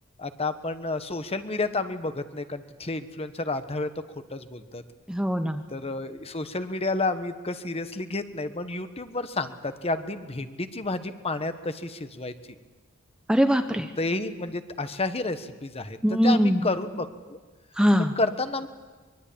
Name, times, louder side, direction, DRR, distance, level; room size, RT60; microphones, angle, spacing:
voice 1, 0.2-4.0 4.3-4.8 5.7-12.3 14.0-16.0 16.2-17.4 18.0-18.7, left 2 dB, 30° left, 10 dB, 1.2 m, -30 dB
voice 2, 5.1-5.6 13.3-13.9 16.0-16.6 17.8-18.1, equal, 5° right, 7 dB, 0.8 m, -22 dB
23.5 x 23.0 x 8.7 m, 1.3 s
head